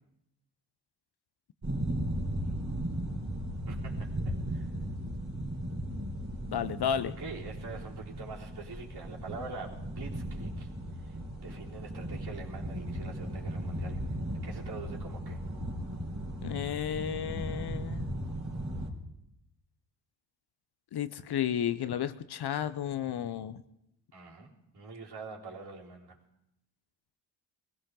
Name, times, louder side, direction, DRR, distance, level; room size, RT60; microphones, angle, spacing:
sound 1, 1.6-18.9, right 1 dB, 35° right, 3.9 m, -36 dB
voice 1, 3.7-4.7 7.0-10.7 11.0-14.0 14.4-15.4 24.1-26.2, right 4 dB, 50° right, -3 dB, 4.1 m, -45 dB
voice 2, 6.5-7.1 16.4-18.1 20.9-23.6, left 9 dB, 55° left, 13 dB, 0.8 m, -32 dB
20.0 x 16.0 x 3.9 m, 0.83 s
supercardioid pair, 55°, 48 cm